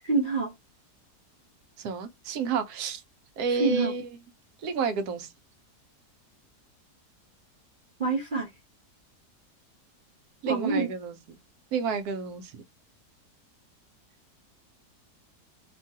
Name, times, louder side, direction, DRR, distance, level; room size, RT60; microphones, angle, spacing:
voice 1, 0.0-0.5 3.6-3.9 8.0-8.5 10.5-10.9, right 4 dB, 50° right, 0.6 m, -26 dB
voice 2, 1.8-3.0 3.4-4.2 4.6-5.3 10.4-11.2 11.7-12.6, right 5 dB, 75° right, 1.1 m, -30 dB
3.0 x 2.3 x 2.7 m
omnidirectional pair, 1.7 m